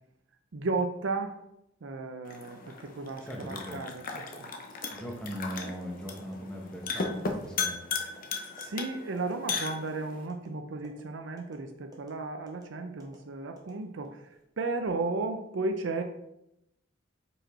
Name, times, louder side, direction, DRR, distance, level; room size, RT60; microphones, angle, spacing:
voice 1, 0.5-1.4 1.8-4.5 8.3-16.0, right 3 dB, 70° right, 5 dB, 0.6 m, -34 dB
sound 1, 2.2-10.3, left 4 dB, 45° left, 0.8 m, -37 dB
voice 2, 3.2-3.8 4.9-7.8, equal, 5° left, 0 dB, 1.0 m, -39 dB
sound 2, 3.6-3.8 4.2-4.4 4.8-5.1 5.5-5.7 6.2-6.4 6.8-7.0 7.4-7.6 8.0-8.2 8.6-8.8 9.2-9.3 9.7-10.0 10.3-10.5 10.8-11.0 11.4-11.6 11.9-12.1 12.5-12.6 13.0-13.2 13.6-14.2 14.6-14.9, right 1 dB, 20° right, 1.1 m, -52 dB
5.2 x 4.8 x 4.3 m, 0.83 s
head